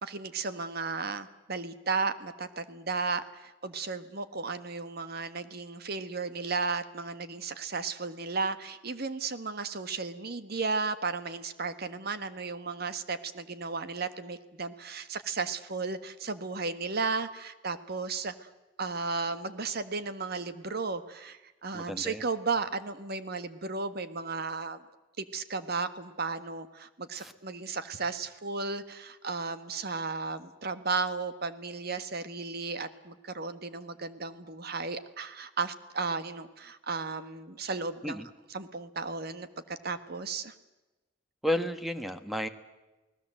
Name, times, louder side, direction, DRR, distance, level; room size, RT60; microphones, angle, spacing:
voice 1, 0.0-18.5 18.8-24.8 25.2-38.2 38.5-40.5, right 4 dB, 55° right, 11 dB, 1.5 m, -34 dB
voice 2, 21.7-22.2 27.2-27.3 38.0-38.3 41.4-42.5, left 1 dB, ahead, 9 dB, 1.4 m, -32 dB
29.0 x 19.0 x 7.8 m, 1.1 s
head